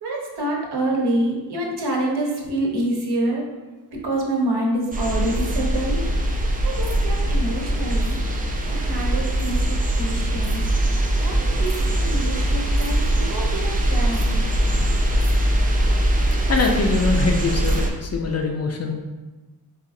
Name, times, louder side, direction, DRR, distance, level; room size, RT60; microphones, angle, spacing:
voice 1, 0.0-3.5 4.0-6.0 6.6-8.2 8.7-10.6 11.2-14.4, right 1 dB, 70° right, -1 dB, 0.9 m, -26 dB
sound 1, 4.9-17.9, right 1 dB, 20° right, 0.4 m, -21 dB
voice 2, 16.5-18.9, left 4 dB, 40° left, 2 dB, 0.4 m, -23 dB
4.0 x 2.4 x 2.6 m, 1.2 s
cardioid pair, 80°, 41 cm